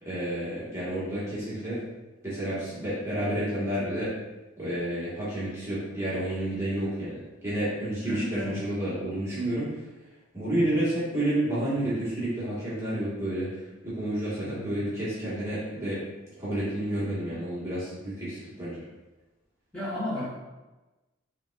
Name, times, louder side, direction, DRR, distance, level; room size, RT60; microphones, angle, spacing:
voice 1, 0.0-1.8 2.2-4.1 4.6-9.7 10.3-13.5 13.8-16.0 16.4-18.8, right 1 dB, 15° right, -11 dB, 1.2 m, -30 dB
voice 2, 8.0-8.5 10.4-10.7 14.4-14.7 19.7-20.3, left 1 dB, 5° left, -11 dB, 1.2 m, -34 dB
5.0 x 3.0 x 2.3 m, 1.1 s
head